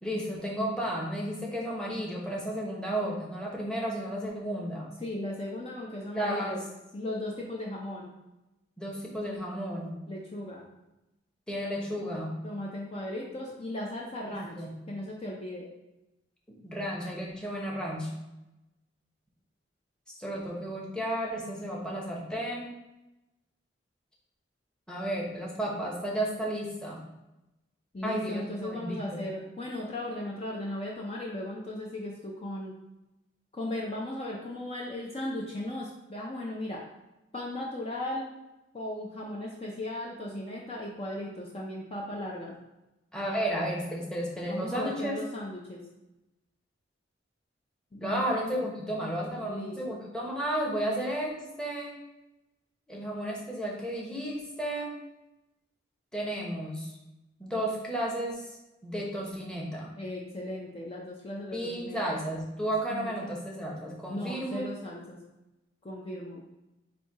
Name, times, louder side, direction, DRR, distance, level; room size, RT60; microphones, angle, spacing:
voice 1, 0.0-4.9 6.1-6.6 8.8-10.0 11.5-12.4 14.3-14.7 16.6-18.1 20.1-22.7 24.9-27.0 28.0-29.2 43.1-45.2 48.0-52.0 52.9-55.0 56.1-56.9 57.4-58.4 58.8-59.9 61.5-64.7, right 1 dB, 5° left, -3 dB, 0.9 m, -33 dB
voice 2, 5.0-6.6 6.9-8.1 10.1-10.6 12.4-15.7 27.9-32.8 33.5-36.8 37.3-38.3 38.7-42.6 44.5-45.8 47.9-48.7 49.4-50.1 60.0-62.0 62.9-63.3 64.1-65.2 65.8-66.4, left 1 dB, 30° left, -2 dB, 0.6 m, -37 dB
4.3 x 2.7 x 4.5 m, 0.97 s
head